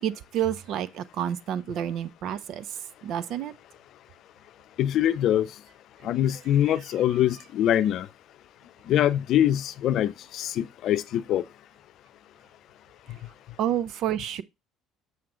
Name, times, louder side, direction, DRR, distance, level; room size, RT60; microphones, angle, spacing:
voice 1, 0.0-2.6 3.0-3.5 13.6-14.4, right 10 dB, 60° right, 0.6 m, -29 dB
voice 2, 4.8-5.5 6.0-8.1 8.9-11.4 13.1-13.2, left 11 dB, 60° left, 0.6 m, -24 dB
7.6 x 5.8 x 3.8 m
hypercardioid pair, 65°, 0 cm